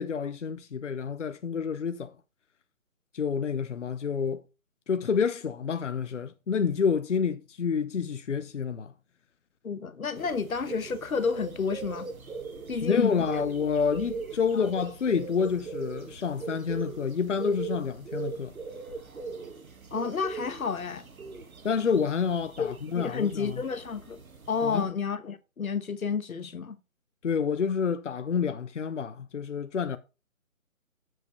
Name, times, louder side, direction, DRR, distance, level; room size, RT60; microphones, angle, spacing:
voice 1, 0.0-2.2 3.1-4.4 4.9-8.9 12.8-18.5 21.6-23.6 24.6-24.9 27.2-30.0, left 6 dB, 60° left, 0.8 m, -28 dB
voice 2, 9.6-12.1 12.7-13.1 19.9-21.0 22.6-24.2 24.5-26.8, left 5 dB, 85° left, 1.2 m, -30 dB
sound 1, 10.1-24.8, right 4 dB, 85° right, 1.7 m, -40 dB
7.6 x 5.2 x 4.5 m
hypercardioid pair, 170°, 41 cm